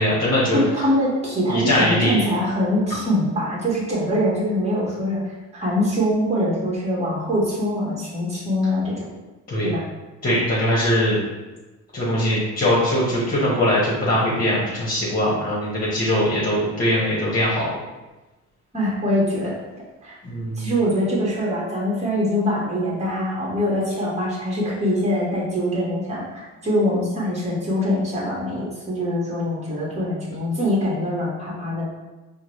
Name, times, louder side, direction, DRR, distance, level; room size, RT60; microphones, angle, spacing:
voice 1, 0.0-0.6 1.5-2.2 9.5-9.7 10.2-11.2 11.9-17.7 20.2-20.6, equal, 30° left, -7 dB, 1.2 m, -21 dB
voice 2, 0.5-5.2 5.5-9.1 9.6-9.8 18.7-19.5 20.0-20.2 20.6-31.9, left 1 dB, 20° right, -5 dB, 1.4 m, -23 dB
4.6 x 2.2 x 3.1 m, 1.1 s
cardioid pair, 90°, 30 cm